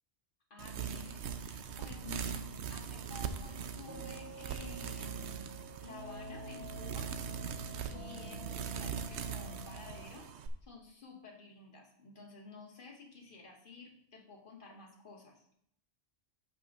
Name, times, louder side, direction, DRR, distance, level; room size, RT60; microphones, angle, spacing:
voice 1, 0.5-7.1 7.9-15.5, left 4 dB, 50° left, 0 dB, 1.5 m, -52 dB
sound 1, 0.6-10.5, right 7 dB, 85° right, 0.9 m, -41 dB
sound 2, 3.2-10.1, right 1 dB, 15° right, 1.1 m, -49 dB
13.0 x 5.3 x 2.6 m, 0.72 s
omnidirectional pair, 1.1 m